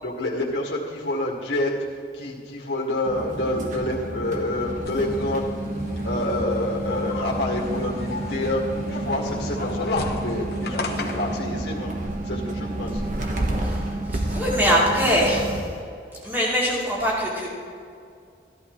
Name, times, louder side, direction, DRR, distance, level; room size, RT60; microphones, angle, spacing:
voice 1, 0.0-1.7 2.1-5.4 6.0-8.6 8.9-11.9 12.2-13.0, left 1 dB, 85° left, -2 dB, 1.8 m, -27 dB
sound 1, 3.0-15.6, right 1 dB, 45° right, 1.2 m, -30 dB
sound 2, 4.9-11.4, left 2 dB, 60° left, 1.1 m, -35 dB
voice 2, 14.1-15.6 16.2-17.5, equal, 10° right, -5 dB, 2.5 m, -22 dB
14.5 x 11.0 x 3.1 m, 2.4 s
head